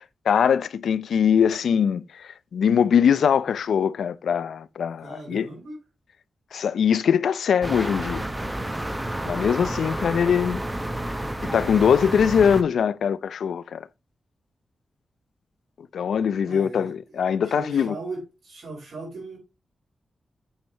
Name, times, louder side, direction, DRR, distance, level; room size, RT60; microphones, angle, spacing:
voice 1, 0.0-5.5 6.5-8.3 9.3-10.6 11.4-13.9 15.9-17.9, left 7 dB, 85° left, 0.5 m, -22 dB
voice 2, 5.0-5.8 16.4-16.9 17.4-18.2 18.4-19.4, right 3 dB, 75° right, 5.7 m, -37 dB
sound 1, 7.6-12.6, right 1 dB, 10° right, 0.8 m, -30 dB
8.9 x 6.5 x 3.0 m
wide cardioid pair, 135°, 0 cm